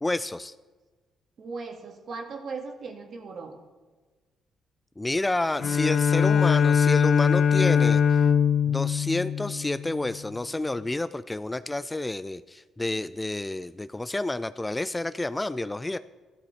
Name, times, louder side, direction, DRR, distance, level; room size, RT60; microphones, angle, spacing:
voice 1, 0.0-0.5 5.0-8.2 8.7-16.0, left 2 dB, 15° left, 14 dB, 0.4 m, -29 dB
voice 2, 1.4-3.6, right 4 dB, 55° right, 4 dB, 2.0 m, -38 dB
Bowed string instrument, 5.6-10.2, left 7 dB, 60° left, 0.8 m, -22 dB
14.0 x 13.0 x 4.2 m, 1.3 s
cardioid pair, 90°, 0 cm